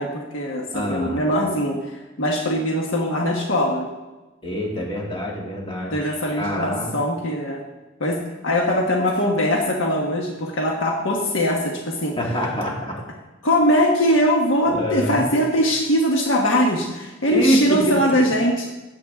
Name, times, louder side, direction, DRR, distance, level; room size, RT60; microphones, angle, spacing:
voice 1, 0.0-3.9 5.9-7.6 8.0-12.2 13.4-18.7, equal, 70° left, 0 dB, 1.3 m, -21 dB
voice 2, 0.7-1.2 4.4-5.9 6.3-6.9 12.2-13.0 14.6-15.2 17.3-18.1, equal, 25° left, -2 dB, 2.5 m, -25 dB
15.0 x 8.6 x 3.7 m, 1.1 s
head